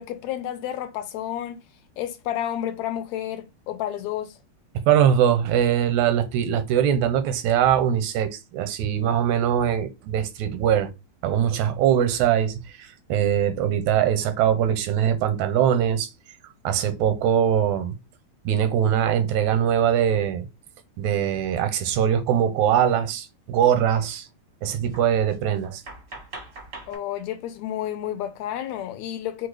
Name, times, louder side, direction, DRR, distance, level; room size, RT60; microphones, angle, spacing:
voice 1, 0.0-1.6 2.0-4.3 26.9-29.5, left 11 dB, 75° left, 1.9 m, -31 dB
voice 2, 4.9-10.9 11.2-12.6 13.1-16.1 16.6-17.9 18.5-20.5 21.0-24.2 24.6-25.8, right 9 dB, 85° right, 2.1 m, -22 dB
sound 1, 21.2-21.3 23.0-23.1 23.3-23.6 24.3-24.4 24.9-27.0, right 2 dB, 50° right, 0.7 m, -43 dB
4.5 x 2.4 x 4.7 m
omnidirectional pair, 3.3 m